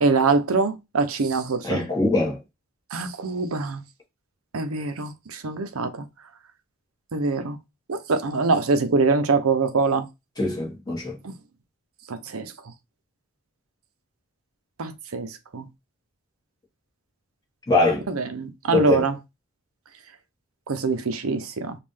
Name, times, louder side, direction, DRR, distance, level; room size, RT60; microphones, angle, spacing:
voice 1, 0.0-1.9 2.9-3.8 4.5-5.9 7.1-7.6 7.9-10.1 11.2-11.3 12.1-12.5 14.8-15.6 18.1-19.2 20.7-21.8, right 4 dB, 70° right, 0.6 m, -24 dB
voice 2, 1.6-2.4 10.4-11.2 17.7-18.0 18.7-19.0, left 2 dB, 15° left, 1.4 m, -22 dB
5.3 x 2.4 x 3.2 m
head